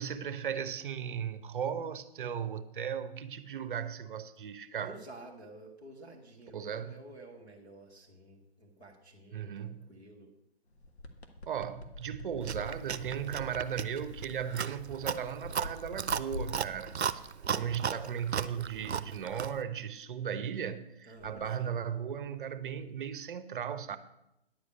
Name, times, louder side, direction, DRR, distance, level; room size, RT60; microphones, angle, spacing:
voice 1, 0.0-5.0 6.5-7.0 9.3-10.0 11.5-17.3 17.5-24.0, right 8 dB, 55° right, 0.9 m, -36 dB
voice 2, 4.8-10.3 21.0-21.7, right 2 dB, 5° left, 0.4 m, -51 dB
sound 1, 10.7-17.3 21.2-21.5, left 2 dB, 80° left, 1.5 m, -47 dB
Chewing mastication, 12.4-19.6, right 7 dB, 85° right, 0.6 m, -36 dB
10.5 x 4.9 x 8.2 m
hypercardioid pair, 145°, 32 cm